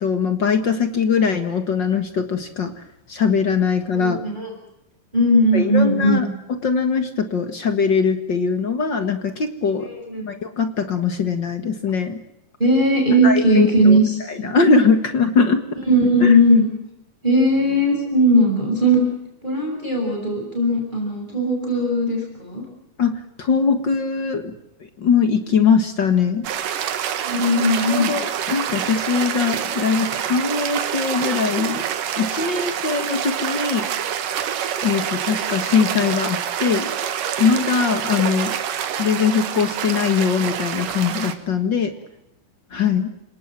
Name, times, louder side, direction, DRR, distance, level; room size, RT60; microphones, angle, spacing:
voice 1, 0.0-2.7 3.1-4.2 5.5-6.3 6.6-9.9 10.2-12.2 13.2-14.0 14.3-15.6 16.2-16.3 23.0-24.5 25.0-26.5 27.9-31.8 32.2-33.8 34.8-36.9 37.4-38.6 39.0-41.9 42.7-43.1, left 5 dB, 50° left, 8 dB, 1.4 m, -21 dB
voice 2, 4.0-4.5 5.1-6.2 9.8-10.2 12.6-14.5 15.9-16.7 17.2-19.1 19.4-22.7 27.2-28.1, equal, 10° right, 0 dB, 6.9 m, -18 dB
sound 1, 26.4-41.3, right 9 dB, 65° right, 3.0 m, -26 dB
28.5 x 18.5 x 7.6 m, 0.84 s
omnidirectional pair, 4.4 m